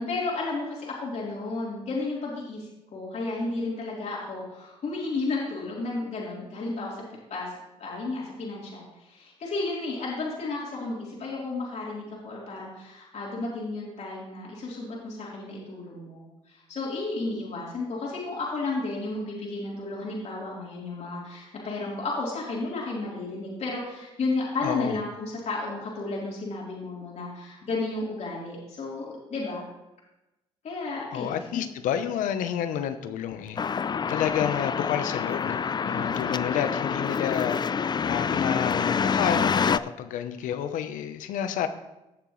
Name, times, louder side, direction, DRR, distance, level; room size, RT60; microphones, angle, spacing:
voice 1, 0.0-7.0 7.3-29.6 30.6-31.4 35.8-36.3, left 3 dB, 60° left, -5 dB, 3.9 m, -33 dB
voice 2, 24.6-25.0 31.1-41.7, left 9 dB, 80° left, 9 dB, 0.9 m, -30 dB
sound 1, 33.6-39.8, left 6 dB, 35° left, 0.4 m, -27 dB
17.0 x 6.9 x 3.3 m, 0.96 s
supercardioid pair, 60°, 13 cm